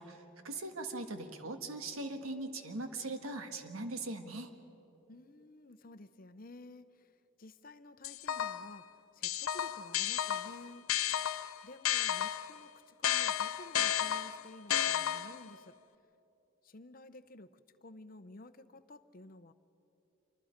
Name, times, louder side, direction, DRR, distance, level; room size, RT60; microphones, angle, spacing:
voice 1, 0.0-4.5, right 2 dB, 90° right, 6 dB, 1.5 m, -40 dB
voice 2, 5.1-7.1 7.4-8.9 9.1-10.9 11.6-15.7 16.6-17.5 17.8-19.5, left 2 dB, 45° left, 12 dB, 0.7 m, -53 dB
sound 1, 8.0-8.8 9.2-12.6 13.0-15.5, left 10 dB, 85° left, 0.6 m, -33 dB
27.5 x 24.5 x 5.2 m, 2.9 s
head